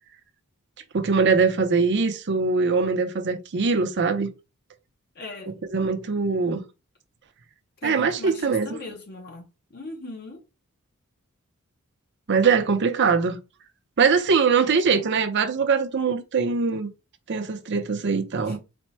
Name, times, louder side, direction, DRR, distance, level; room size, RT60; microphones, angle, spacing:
voice 1, 0.9-4.3 5.5-6.6 7.8-8.8 12.3-13.4 14.0-16.9 17.3-18.6, right 5 dB, 55° right, 0.6 m, -22 dB
voice 2, 5.1-5.6 7.8-10.4 14.6-15.1 18.5-18.6, left 3 dB, 45° left, 0.8 m, -39 dB
4.2 x 2.1 x 4.2 m
head